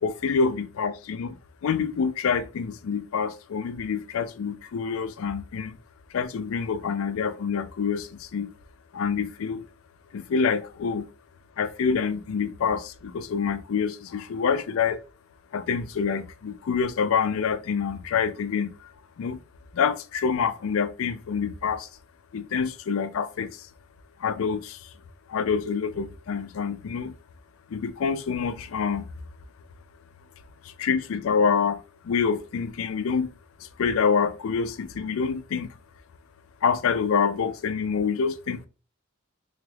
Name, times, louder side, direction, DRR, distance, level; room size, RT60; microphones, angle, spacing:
voice 1, 0.0-1.4 1.6-5.8 6.1-8.5 8.9-9.7 10.1-11.1 11.6-15.0 15.5-19.4 19.7-21.9 22.3-23.7 24.2-24.9 25.3-27.1 27.7-29.1 30.6-33.3 33.6-35.7 36.6-38.7, left 6 dB, 70° left, 0.4 m, -27 dB
3.4 x 3.3 x 2.3 m
head